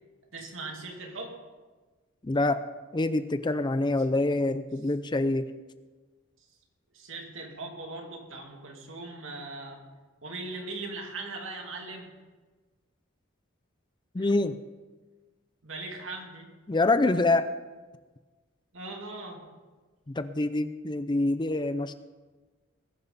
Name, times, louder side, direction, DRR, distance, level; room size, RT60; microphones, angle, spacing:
voice 1, 0.3-1.4 6.9-9.8 10.2-12.1 14.2-14.3 15.6-16.5 18.7-19.4, right 3 dB, 65° right, 1 dB, 2.6 m, -39 dB
voice 2, 2.2-2.6 2.9-5.5 14.1-14.6 16.7-17.5 20.1-21.9, left 2 dB, 20° left, 11 dB, 0.5 m, -26 dB
20.5 x 10.5 x 4.1 m, 1.3 s
head